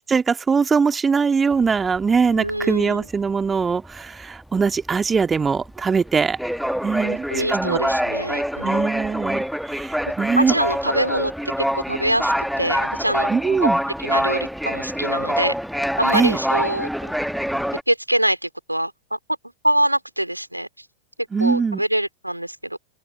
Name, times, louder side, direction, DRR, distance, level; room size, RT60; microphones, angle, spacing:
voice 1, 0.1-6.4 6.8-7.8 8.6-10.5 13.3-13.8 16.1-16.4 21.3-21.8, right 5 dB, 15° right, 1.8 m, -21 dB
sound 1, 1.5-2.7 3.1-3.3 3.6-17.8, equal, ahead, 1.4 m, -25 dB
voice 2, 2.3-3.1 7.0-8.9 10.4-11.3 11.6-13.3 13.6-13.7 14.0-15.5 16.0-16.9 17.9-19.2 19.6-20.8 21.4-22.8, right 1 dB, 90° right, 3.9 m, -24 dB
open air
figure-of-eight pair, 90°, 0 cm